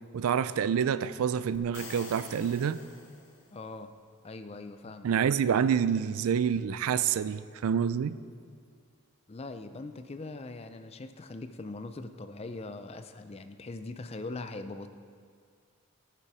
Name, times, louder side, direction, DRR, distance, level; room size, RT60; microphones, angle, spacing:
voice 1, 0.1-2.8 5.0-8.2, right 7 dB, 75° right, 0.3 m, -27 dB
sound 1, 1.5-3.6, left 3 dB, 55° left, 1.6 m, -47 dB
voice 2, 3.5-3.9 4.2-5.1 9.3-14.9, left 3 dB, 25° left, 0.4 m, -41 dB
13.5 x 6.8 x 4.8 m
head